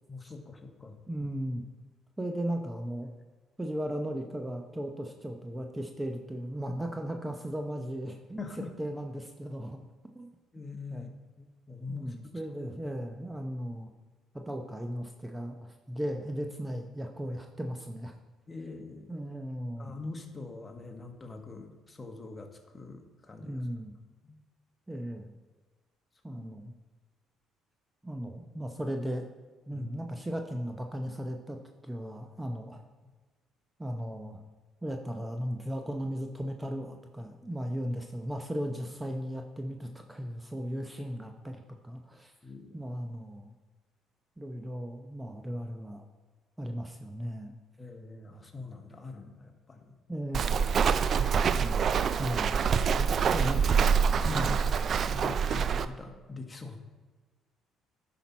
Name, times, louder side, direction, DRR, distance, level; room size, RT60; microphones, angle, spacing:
voice 1, 0.1-1.0 8.4-8.8 10.5-11.1 11.4-12.1 18.5-19.2 19.8-23.6 24.2-24.4 24.9-25.0 26.3-26.4 29.7-29.9 33.0-33.1 42.4-42.8 47.8-49.9 52.9-53.5 54.2-54.5 55.1-56.8, left 3 dB, 25° left, 4 dB, 1.4 m, -43 dB
voice 2, 1.1-1.6 2.2-3.1 3.6-8.4 8.8-9.8 10.1-10.3 10.9-11.1 11.9-13.9 14.3-18.1 19.1-19.9 23.4-23.9 24.9-25.3 26.2-26.7 28.0-29.3 29.7-31.6 31.8-32.8 33.8-34.4 34.8-42.3 42.7-43.5 44.4-46.0 46.6-47.5 50.1-50.4 51.5-51.9 52.2-52.6 53.3-53.8 54.3-54.5, equal, 15° right, 4 dB, 0.8 m, -36 dB
Walk footsteps, 50.3-55.8, right 6 dB, 55° right, 0.4 m, -26 dB
10.0 x 5.9 x 4.2 m, 1.3 s
supercardioid pair, 65°, 0 cm